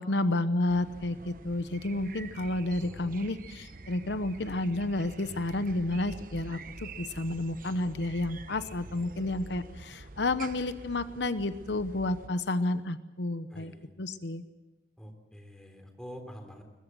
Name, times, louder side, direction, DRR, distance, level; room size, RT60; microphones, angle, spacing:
voice 1, 0.0-13.7 14.0-14.4, left 2 dB, 80° left, 12 dB, 1.0 m, -31 dB
sound 1, 0.7-12.3, right 3 dB, 50° right, 1.1 m, -46 dB
voice 2, 2.8-3.1 13.5-13.9 15.0-16.6, equal, 5° left, 4 dB, 3.3 m, -46 dB
22.5 x 20.5 x 7.6 m, 1.1 s
head